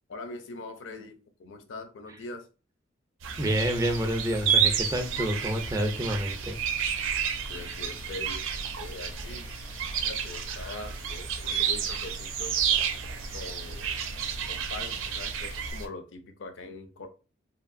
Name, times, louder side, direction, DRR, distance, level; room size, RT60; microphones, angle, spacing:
voice 1, 0.1-2.5 7.5-8.5 8.8-9.5 10.0-12.6 13.3-14.0 14.5-17.1, left 3 dB, 70° left, 0.5 m, -42 dB
sound 1, 3.2-15.9, right 7 dB, 80° right, 0.4 m, -31 dB
voice 2, 3.4-6.6, right 1 dB, 15° right, 0.4 m, -28 dB
sound 2, 3.7-15.7, left 2 dB, 90° left, 0.9 m, -49 dB
2.8 x 2.5 x 2.5 m
head